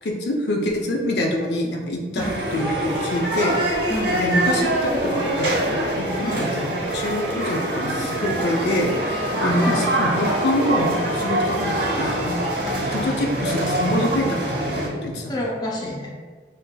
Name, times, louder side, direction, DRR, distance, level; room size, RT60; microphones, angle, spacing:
voice 1, 0.0-2.2 2.5-3.6 4.2-8.9 9.4-15.4, left 1 dB, 65° left, 0 dB, 0.6 m, -25 dB
sound 1, 2.2-14.9, right 1 dB, 65° right, 1.1 m, -24 dB
sound 2, 2.7-14.6, right 2 dB, 40° right, 0.4 m, -37 dB
voice 2, 3.9-4.2 6.2-6.5 9.3-10.0 12.6-12.9 15.3-16.1, left 1 dB, 25° left, -3 dB, 0.6 m, -28 dB
Wind instrument woodwind instrument, 6.9-11.7, left 1 dB, 45° left, 1.0 m, -37 dB
7.2 x 2.7 x 2.2 m, 1.5 s
head